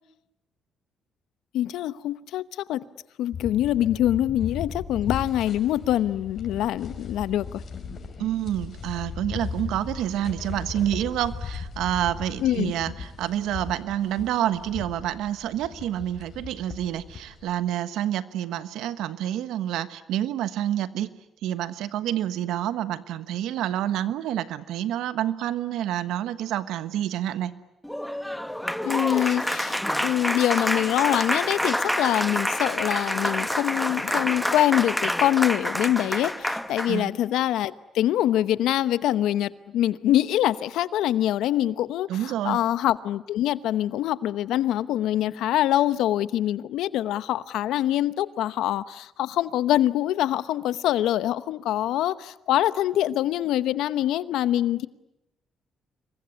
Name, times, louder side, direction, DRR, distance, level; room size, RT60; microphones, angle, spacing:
voice 1, 1.5-2.8 3.2-7.6 12.4-12.7 28.8-54.9, left 12 dB, 85° left, 0.9 m, -24 dB
sound 1, 3.3-17.5, left 5 dB, 50° left, 5.7 m, -37 dB
voice 2, 8.2-21.1 21.4-27.5 36.9-37.1 42.1-42.6, right 12 dB, 85° right, 1.3 m, -28 dB
Applause, 27.8-37.0, equal, 5° left, 1.2 m, -27 dB
27.0 x 22.5 x 9.7 m
cardioid pair, 85°, 0 cm